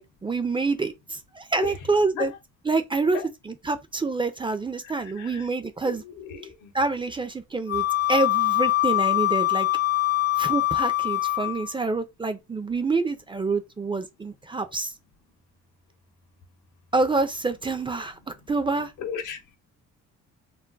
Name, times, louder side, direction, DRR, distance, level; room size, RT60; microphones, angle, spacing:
voice 1, 0.0-2.3 2.7-3.2 3.7-6.0 6.7-9.7 10.4-14.9 16.9-18.9, right 3 dB, 15° right, 0.4 m, -27 dB
voice 2, 5.2-5.5 5.8-6.7 19.0-19.4, left 7 dB, 85° left, 0.8 m, -35 dB
Wind instrument woodwind instrument, 7.7-11.7, left 16 dB, 50° left, 0.6 m, -23 dB
2.3 x 2.0 x 3.8 m
cardioid pair, 90°, 30 cm